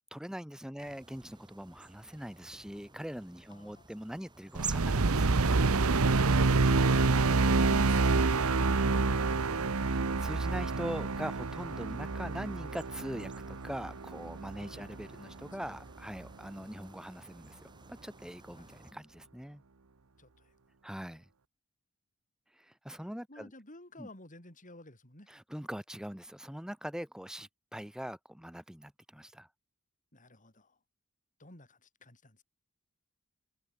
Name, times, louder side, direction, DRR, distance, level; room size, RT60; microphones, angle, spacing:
voice 1, 0.1-5.7 7.7-7.9 9.8-18.7 18.9-19.6 20.8-21.3 22.5-23.5 24.0-24.1 25.3-29.5, equal, 5° right, 1.1 m, -42 dB
sound 1, 0.8-18.9, right 5 dB, 20° right, 4.5 m, -51 dB
voice 2, 3.5-3.9 6.3-10.0 14.6-15.8 18.5-18.8 20.2-20.5 23.3-25.3 30.1-30.8 31.4-32.4, left 2 dB, 35° left, 7.9 m, -53 dB
sound 2, 4.5-15.0, right 3 dB, 75° right, 1.0 m, -28 dB
head